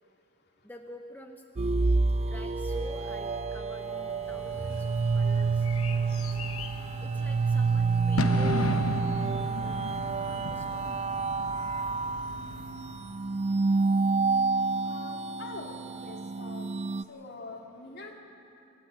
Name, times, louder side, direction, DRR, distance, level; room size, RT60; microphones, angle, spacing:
voice 1, 0.6-1.4 2.3-6.2 7.0-9.8 10.2-11.0, left 1 dB, 10° left, 3 dB, 0.9 m, -49 dB
sound 1, 1.6-17.0, right 4 dB, 30° right, 0.4 m, -28 dB
Wind instrument woodwind instrument, 2.7-7.2, left 1 dB, 10° right, 2.5 m, -51 dB
Bird / Fireworks, 4.2-13.4, left 3 dB, 90° left, 0.9 m, -37 dB
voice 2, 14.8-16.7 17.1-18.2, left 2 dB, 50° left, 2 dB, 2.4 m, -44 dB
26.5 x 12.0 x 9.4 m, 2.9 s
head